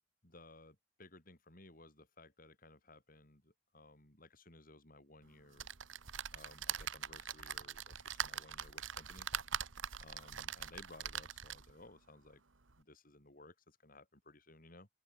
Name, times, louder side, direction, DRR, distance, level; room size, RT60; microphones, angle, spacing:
voice 1, 0.2-5.7 6.3-9.3 10.0-12.4 12.8-14.9, left 2 dB, 45° left, 6.3 m, -59 dB
sound 1, 5.6-11.8 12.3-12.4 12.7-12.8, right 9 dB, 85° right, 1.6 m, -42 dB
open air
head